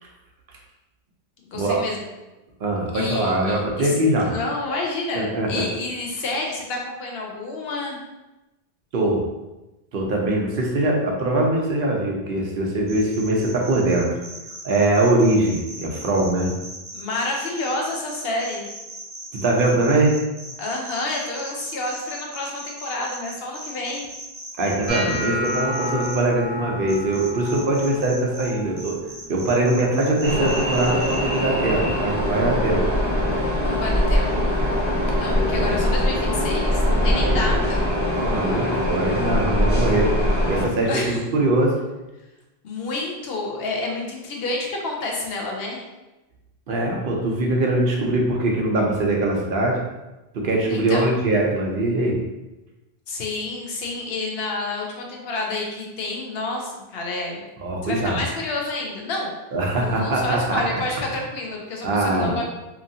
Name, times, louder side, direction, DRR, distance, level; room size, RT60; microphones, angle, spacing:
voice 1, 1.5-2.0 2.9-4.0 4.3-8.0 16.9-18.7 20.6-24.1 26.0-26.1 33.6-34.5 35.2-37.8 40.8-41.2 42.6-45.8 50.7-51.1 53.1-57.4 57.8-59.3 59.8-62.4, left 2 dB, 75° left, 0 dB, 0.8 m, -29 dB
voice 2, 2.6-4.3 5.1-5.6 8.9-9.2 9.9-14.1 14.6-16.5 19.3-20.1 24.6-29.0 29.3-32.8 35.3-35.7 37.2-37.5 38.1-40.1 40.5-41.8 46.7-49.8 50.3-52.2 57.6-58.2 59.5-60.6 61.8-62.3, right 2 dB, 65° right, -1 dB, 0.7 m, -22 dB
sound 1, 12.9-26.2 26.9-28.5 28.8-31.4, right 1 dB, 25° right, 0.7 m, -38 dB
sound 2, 24.9-31.0 31.2-31.8 32.1-32.6 33.3-33.5 35.2-35.3, left 1 dB, 45° left, 1.1 m, -33 dB
sound 3, 30.2-40.7, left 1 dB, 10° left, 0.7 m, -22 dB
2.9 x 2.6 x 2.6 m, 1.0 s
omnidirectional pair, 1.0 m